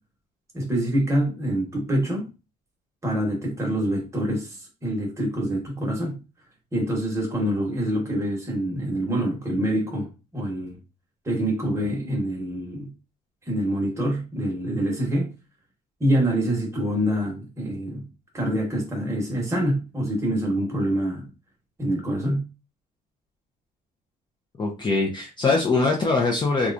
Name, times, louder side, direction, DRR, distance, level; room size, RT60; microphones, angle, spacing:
voice 1, 0.5-2.3 3.0-4.6 4.8-6.2 6.7-10.8 11.2-12.9 13.5-15.3 16.0-18.0 18.3-21.3 21.8-22.4, right 1 dB, 15° right, 1.2 m, -25 dB
voice 2, 24.6-26.7, left 3 dB, 25° left, 0.6 m, -22 dB
3.1 x 2.3 x 2.5 m
cardioid pair, 110°, 17 cm